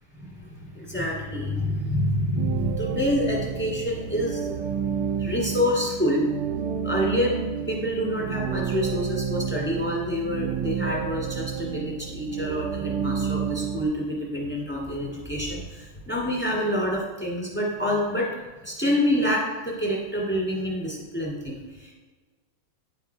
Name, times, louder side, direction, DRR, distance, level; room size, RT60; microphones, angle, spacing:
voice 1, 0.2-6.3 6.8-7.4 7.7-18.3 18.6-21.9, left 1 dB, 5° left, -5 dB, 1.5 m, -27 dB
sound 1, 2.4-13.8, right 7 dB, 80° right, 1.4 m, -30 dB
9.8 x 3.6 x 4.5 m, 1.3 s
omnidirectional pair, 2.4 m